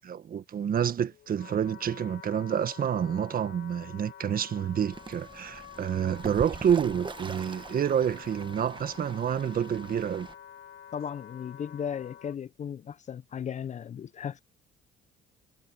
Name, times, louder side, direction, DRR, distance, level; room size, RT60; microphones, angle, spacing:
voice 1, 0.0-10.3, right 8 dB, 45° right, 1.5 m, -28 dB
Wind instrument woodwind instrument, 0.9-12.4, left 9 dB, 60° left, 2.3 m, -49 dB
Fowl / Bird, 4.9-10.3, right 4 dB, 25° right, 1.2 m, -43 dB
voice 2, 10.9-14.4, left 8 dB, 35° left, 0.5 m, -36 dB
cardioid pair, 105°, 20 cm